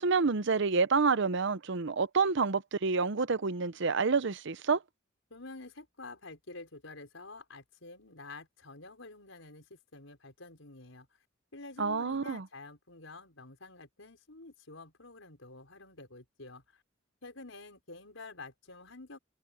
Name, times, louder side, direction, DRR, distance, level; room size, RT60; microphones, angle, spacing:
voice 1, 0.0-4.8 11.8-12.4, right 4 dB, 65° right, 0.8 m, -28 dB
voice 2, 5.3-11.2 11.5-16.8 17.2-19.2, left 3 dB, 85° left, 5.4 m, -49 dB
head